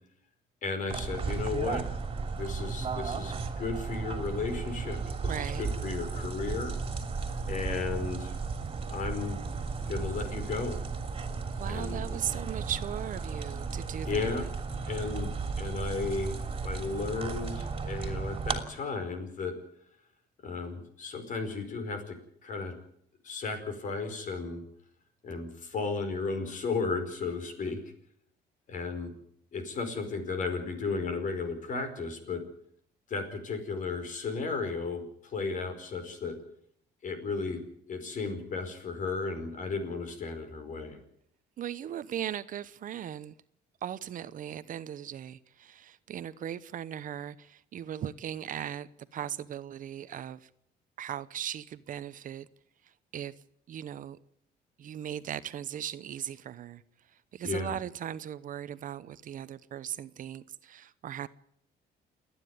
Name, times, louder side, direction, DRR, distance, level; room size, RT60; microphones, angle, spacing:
voice 1, 0.6-1.8 2.4-6.8 7.5-8.3 8.9-9.4 9.9-10.8 11.7-12.2 14.0-14.5 14.9-15.3 15.6-16.3 16.6-19.5 20.4-22.2 22.4-22.7 23.2-24.6 25.2-27.8 28.7-29.1 29.5-32.4 33.1-36.4 37.0-41.0 57.4-57.8, left 4 dB, 50° left, 4.9 m, -34 dB
sound 1, 0.9-18.6, right 4 dB, 30° right, 2.9 m, -35 dB
voice 2, 5.3-5.7 11.6-14.5 41.6-43.3 43.8-50.5 51.0-52.5 53.1-53.3 53.7-54.2 54.8-56.8 57.3-61.3, right 10 dB, 50° right, 0.9 m, -38 dB
28.5 x 9.9 x 9.5 m
cardioid pair, 110°, 17 cm